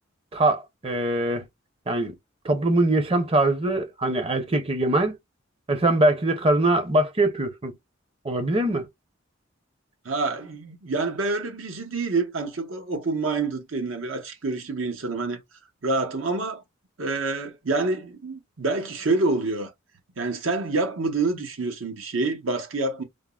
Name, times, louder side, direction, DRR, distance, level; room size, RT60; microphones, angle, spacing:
voice 1, 0.3-1.4 1.9-2.1 2.4-5.2 5.7-7.7 8.2-8.9, right 1 dB, 30° right, 0.6 m, -22 dB
voice 2, 10.0-15.4 15.8-16.6 17.0-19.7 20.2-23.0, right 3 dB, 85° right, 0.9 m, -27 dB
3.5 x 2.0 x 2.3 m
head